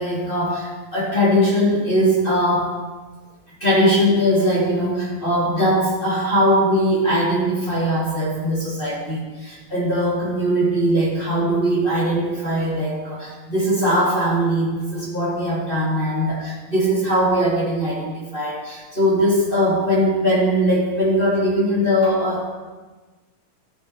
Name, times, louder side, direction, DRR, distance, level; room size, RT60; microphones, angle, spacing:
voice 1, 0.0-2.7 3.6-22.5, equal, 15° left, -6 dB, 2.6 m, -20 dB
14.0 x 10.0 x 4.5 m, 1.3 s
omnidirectional pair, 4.1 m